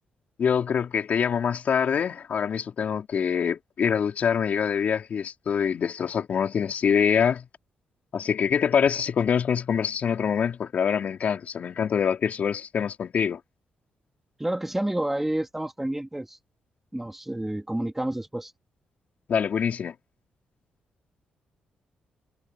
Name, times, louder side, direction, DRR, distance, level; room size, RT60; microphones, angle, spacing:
voice 1, 0.4-7.5 8.1-13.4 19.3-19.9, left 7 dB, 55° left, 4.5 m, -25 dB
voice 2, 14.4-16.4 16.9-18.5, right 1 dB, 10° right, 3.0 m, -29 dB
cardioid pair, 105°, 3 cm